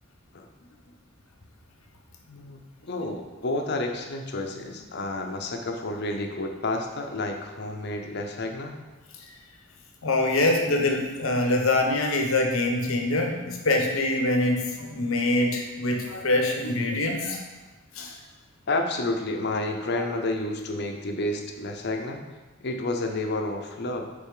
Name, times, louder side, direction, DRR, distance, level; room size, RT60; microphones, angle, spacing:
voice 1, 2.3-8.8 18.7-22.2 22.6-24.1, left 2 dB, 55° left, 3 dB, 0.7 m, -30 dB
voice 2, 10.0-17.4 17.9-18.1 20.0-20.1, left 2 dB, 80° left, 3 dB, 0.9 m, -24 dB
5.5 x 4.1 x 4.9 m, 1.2 s
head